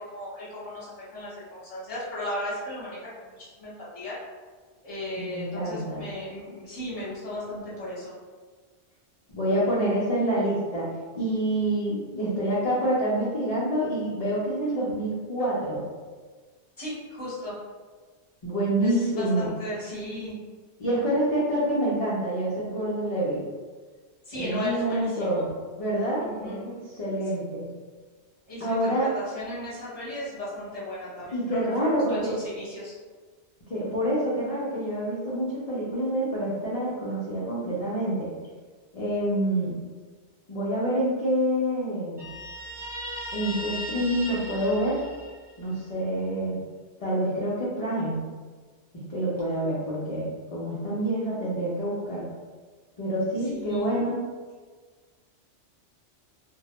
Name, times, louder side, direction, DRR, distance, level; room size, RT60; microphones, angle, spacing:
voice 1, 0.0-4.2 4.8-8.1 16.8-17.6 18.8-20.4 24.2-25.4 26.2-26.6 28.5-33.0 53.4-53.9, left 1 dB, 35° left, -8 dB, 0.8 m, -35 dB
voice 2, 5.2-6.0 9.3-10.9 11.1-15.8 18.4-19.5 20.8-23.4 24.3-25.5 25.8-27.7 28.6-29.1 31.3-32.3 33.7-38.3 38.9-39.7 40.5-42.2 43.3-45.0 45.6-46.6 47.0-48.2 48.9-52.2 53.0-54.2, right 1 dB, 60° left, -8 dB, 0.4 m, -27 dB
Guitar, 42.2-45.7, equal, 30° right, 0.5 m, -37 dB
2.1 x 2.0 x 2.8 m, 1.5 s
omnidirectional pair, 1.2 m